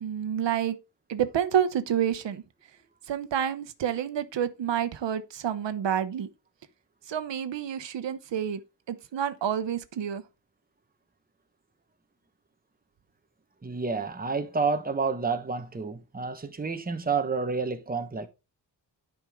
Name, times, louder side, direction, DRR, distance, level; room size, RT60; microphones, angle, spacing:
voice 1, 0.0-0.8 1.1-2.4 3.1-6.3 7.1-8.6 8.9-10.2, right 9 dB, 85° right, 0.9 m, -28 dB
voice 2, 13.6-18.3, right 4 dB, 20° right, 1.1 m, -29 dB
10.5 x 5.3 x 3.6 m
wide cardioid pair, 110°, 43 cm